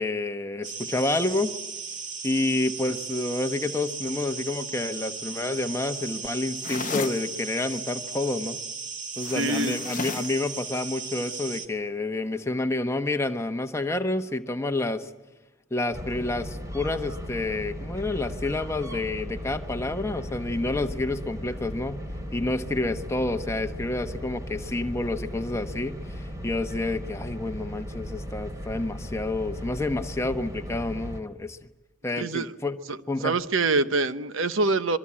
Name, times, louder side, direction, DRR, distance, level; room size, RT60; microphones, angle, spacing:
voice 1, 0.0-1.5 2.2-8.6 9.2-15.1 15.7-22.0 22.3-31.6 32.0-32.8 33.1-33.4, left 2 dB, 15° left, 1.1 m, -29 dB
sound 1, 0.6-11.7, right 5 dB, 40° right, 2.0 m, -36 dB
sound 2, 6.6-7.2 9.2-10.4, left 5 dB, 40° left, 0.8 m, -33 dB
voice 2, 9.3-9.8 32.2-32.5 32.9-33.0 33.2-35.0, right 3 dB, 70° right, 0.9 m, -25 dB
sound 3, 15.9-31.2, equal, 15° right, 2.6 m, -37 dB
26.0 x 23.0 x 8.6 m
head